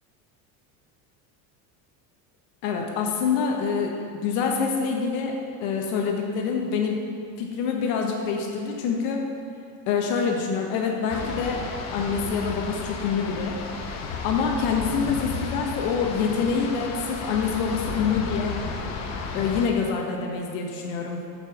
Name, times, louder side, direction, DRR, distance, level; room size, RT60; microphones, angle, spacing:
voice 1, 2.6-5.4 5.6-7.0 7.4-9.2 9.9-11.6 11.9-13.6 14.2-18.6 19.3-21.2, left 5 dB, 90° left, 1 dB, 1.2 m, -26 dB
sound 1, 11.1-19.7, left 4 dB, 40° left, 0.9 m, -33 dB
8.1 x 5.4 x 6.2 m, 2.3 s
cardioid pair, 145°, 41 cm